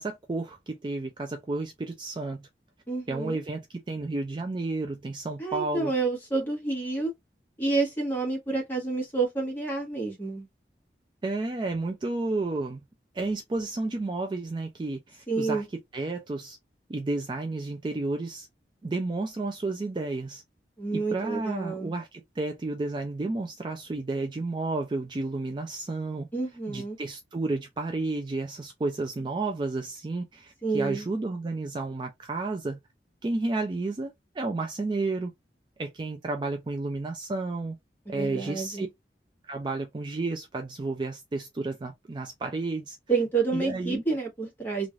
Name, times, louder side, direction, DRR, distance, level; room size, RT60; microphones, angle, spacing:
voice 1, 0.0-2.5 3.1-5.9 11.2-12.8 13.1-15.6 15.9-16.6 16.9-18.5 18.8-20.4 20.9-26.3 26.7-32.8 33.2-35.3 35.8-37.8 38.1-38.9 39.4-43.0 43.5-44.0, right 2 dB, 25° right, 0.3 m, -31 dB
voice 2, 2.9-3.4 5.4-7.1 7.6-10.5 15.3-15.7 20.8-21.9 26.3-27.0 30.6-31.0 38.0-38.9 43.1-44.9, right 3 dB, 10° left, 1.3 m, -29 dB
3.1 x 2.5 x 2.4 m
head